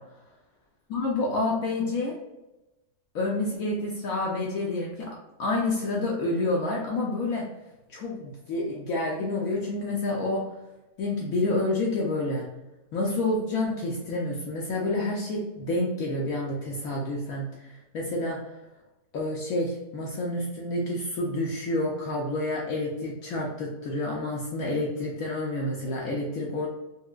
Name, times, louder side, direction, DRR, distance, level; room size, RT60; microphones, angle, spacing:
voice 1, 0.9-2.2 3.1-5.1 5.4-7.5 7.9-10.4 11.0-12.5 12.9-18.4 19.1-26.7, left 2 dB, 70° left, -3 dB, 1.0 m, -29 dB
4.4 x 2.0 x 2.3 m, 1.0 s
omnidirectional pair, 1.6 m